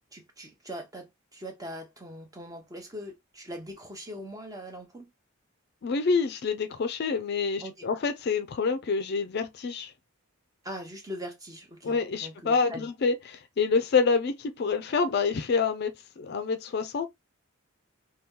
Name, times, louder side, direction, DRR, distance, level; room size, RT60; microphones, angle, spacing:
voice 1, 0.1-5.1 7.6-7.9 10.6-12.9, equal, 15° right, 0.8 m, -41 dB
voice 2, 5.8-9.9 11.8-17.1, left 5 dB, 50° left, 0.4 m, -27 dB
2.9 x 2.2 x 3.5 m
head